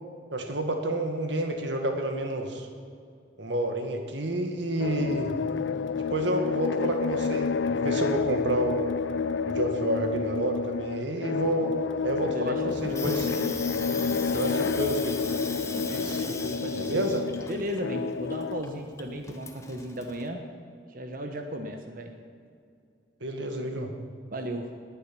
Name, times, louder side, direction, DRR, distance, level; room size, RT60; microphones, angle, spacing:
voice 1, 0.3-2.7 3.4-5.3 6.0-8.9 9.4-11.7 12.0-13.3 14.3-15.3 15.9-16.3 16.7-17.2 23.2-23.9, right 1 dB, 70° right, 4 dB, 1.9 m, -29 dB
sound 1, 4.8-18.6, left 5 dB, 70° left, 0.4 m, -30 dB
voice 2, 12.2-14.7 16.0-17.0 17.5-20.5 20.9-22.1 24.3-24.7, equal, 45° right, 5 dB, 1.0 m, -36 dB
Water tap faucet / Sink (filling or washing), 12.7-20.3, left 3 dB, 15° left, 1.0 m, -38 dB
18.5 x 10.0 x 6.1 m, 2.4 s
head